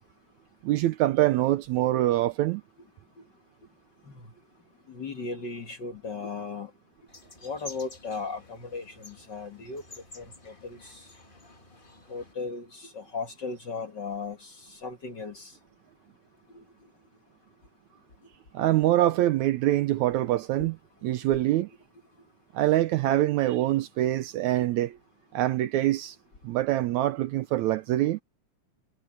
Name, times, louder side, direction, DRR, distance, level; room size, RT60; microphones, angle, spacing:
voice 1, 0.6-2.6 18.5-20.8 21.0-21.7 22.5-25.0 25.3-26.2 26.4-28.2, right 14 dB, 75° right, 1.9 m, -24 dB
voice 2, 4.9-6.7 7.4-9.8 10.2-11.0 12.1-15.5 16.5-16.6 20.6-20.7, left 4 dB, 40° left, 1.9 m, -37 dB
sound 1, 7.1-12.3, left 2 dB, 25° left, 1.3 m, -50 dB
omnidirectional pair, 3.7 m